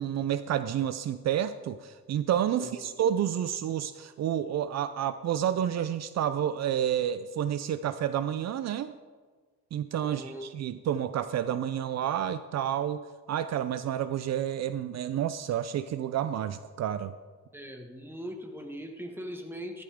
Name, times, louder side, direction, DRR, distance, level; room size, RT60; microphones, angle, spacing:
voice 1, 0.0-8.9 9.7-13.0 13.3-17.1, right 10 dB, 60° right, 13 dB, 0.6 m, -30 dB
voice 2, 2.5-2.9 10.0-10.5 17.5-19.8, equal, 5° right, 3 dB, 1.8 m, -40 dB
14.5 x 12.5 x 3.7 m, 1.4 s
cardioid pair, 90°, 30 cm